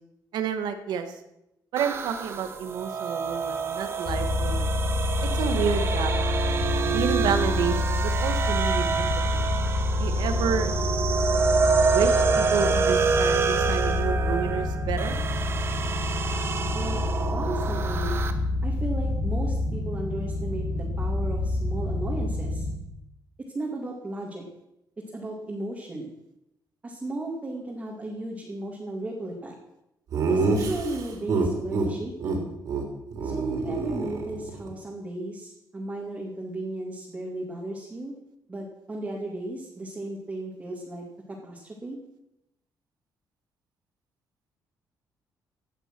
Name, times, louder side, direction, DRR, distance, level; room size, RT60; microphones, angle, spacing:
voice 1, 0.3-1.1 1.7-4.7 5.3-6.3 6.9-9.4 9.9-10.7 11.9-15.2, right 7 dB, 90° right, 8 dB, 1.9 m, -30 dB
sound 1, 1.8-18.3, right 5 dB, 35° right, 1.2 m, -27 dB
sound 2, 4.0-22.7, left 2 dB, 55° left, 4.2 m, -27 dB
voice 2, 17.3-18.2 18.6-22.7 23.4-24.4 25.1-26.1 26.8-29.6 30.3-32.4 33.2-38.1 38.5-41.0 41.4-42.0, right 2 dB, 20° right, -2 dB, 2.4 m, -35 dB
Laughter, 30.1-31.9 32.2-32.4 32.7-32.8 33.1-34.7, right 3 dB, 55° right, 3.7 m, -27 dB
17.0 x 10.0 x 6.2 m, 0.86 s
cardioid pair, 170°, 7 cm